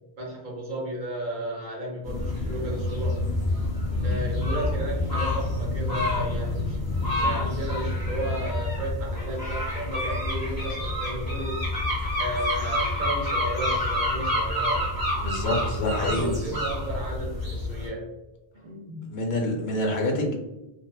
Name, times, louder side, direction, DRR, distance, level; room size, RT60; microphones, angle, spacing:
voice 1, 0.2-3.2 4.0-11.7 12.2-15.0 15.8-18.1 18.6-19.0, right 1 dB, 55° right, -3 dB, 0.8 m, -33 dB
sound 1, 2.0-17.9, left 1 dB, 20° right, 1.2 m, -28 dB
voice 2, 3.9-4.2 15.2-16.3 19.0-20.3, left 2 dB, 85° left, 0 dB, 0.9 m, -27 dB
2.6 x 2.1 x 2.2 m, 0.96 s
omnidirectional pair, 1.1 m